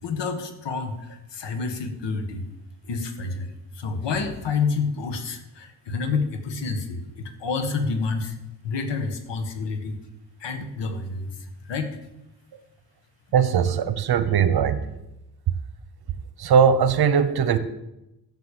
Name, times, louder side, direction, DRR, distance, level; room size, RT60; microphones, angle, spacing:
voice 1, 0.0-2.4 2.9-8.4 8.6-10.0 10.4-11.4 11.6-12.0, left 4 dB, 80° left, 6 dB, 1.7 m, -29 dB
voice 2, 13.3-14.9 16.4-17.6, right 7 dB, 60° right, 12 dB, 1.0 m, -20 dB
12.0 x 6.7 x 6.9 m, 0.91 s
cardioid pair, 120°, 42 cm